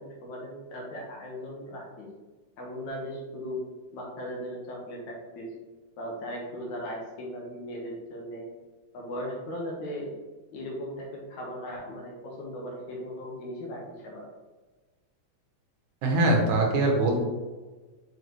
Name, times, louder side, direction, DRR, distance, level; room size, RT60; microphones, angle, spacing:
voice 1, 0.0-2.1 2.6-3.6 3.9-5.5 6.0-8.5 8.9-10.2 10.5-14.2, equal, 70° left, -2 dB, 2.7 m, -37 dB
voice 2, 16.0-17.2, right 2 dB, 75° right, 0 dB, 2.6 m, -22 dB
7.0 x 5.4 x 3.1 m, 1.3 s
omnidirectional pair, 3.5 m